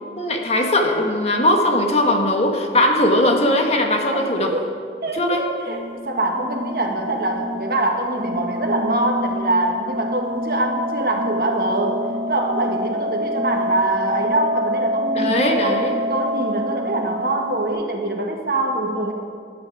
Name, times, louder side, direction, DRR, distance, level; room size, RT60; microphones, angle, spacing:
voice 1, 0.2-4.5 5.1-5.4 15.1-15.9, left 1 dB, 35° left, 3 dB, 1.4 m, -19 dB
voice 2, 4.1-15.8 16.1-19.1, right 2 dB, 55° right, 2 dB, 1.7 m, -24 dB
sound 1, 5.7-17.7, equal, 35° right, 1.6 m, -27 dB
19.5 x 10.5 x 4.8 m, 2.1 s
head